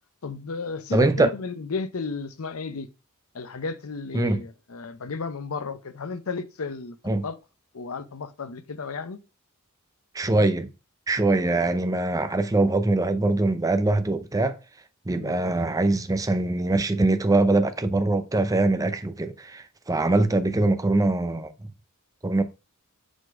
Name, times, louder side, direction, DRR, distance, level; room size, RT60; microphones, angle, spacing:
voice 1, 0.2-2.9 3.3-7.0 7.2-7.4 7.7-9.2 15.2-15.3, left 4 dB, 70° left, 0.7 m, -33 dB
voice 2, 0.9-1.3 4.1-4.4 7.1-7.2 10.1-10.7 11.1-14.6 15.1-21.5 22.2-22.4, right 2 dB, 15° right, 0.6 m, -23 dB
5.0 x 4.1 x 5.0 m
head